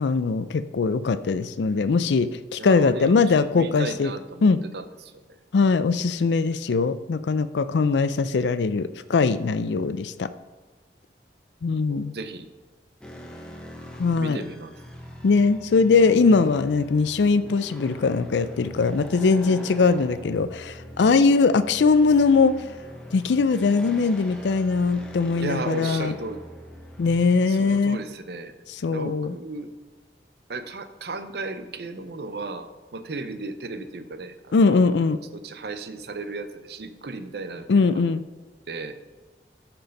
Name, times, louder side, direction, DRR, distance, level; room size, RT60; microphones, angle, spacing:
voice 1, 0.0-4.1 4.4-4.6 5.5-10.3 11.6-12.1 14.0-14.4 15.2-22.5 23.1-26.1 27.0-28.0 28.8-29.3 34.5-35.2 37.7-38.2, left 4 dB, 85° left, 13 dB, 0.4 m, -21 dB
voice 2, 2.6-5.4 11.9-12.5 14.2-14.7 25.4-26.4 27.5-28.6 28.9-29.7 30.5-34.8 35.1-38.0 38.7-39.0, right 3 dB, 70° right, 11 dB, 0.6 m, -35 dB
sound 1, 13.0-27.8, equal, 5° left, 0.9 m, -42 dB
13.0 x 4.5 x 5.2 m, 1.3 s
head